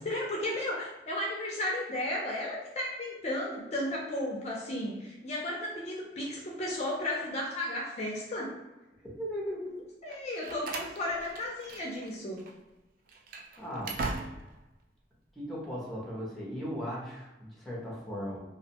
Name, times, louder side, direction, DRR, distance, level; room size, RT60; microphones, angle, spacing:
voice 1, 0.0-8.6 10.0-12.4, left 1 dB, 40° left, -3 dB, 0.4 m, -34 dB
voice 2, 9.0-9.8 13.6-14.0 15.3-18.4, equal, ahead, -5 dB, 0.6 m, -37 dB
Slam, 10.1-12.1 12.4-12.6 13.1-14.7, right 3 dB, 55° right, 0.3 m, -39 dB
2.5 x 2.1 x 2.8 m, 1.1 s
head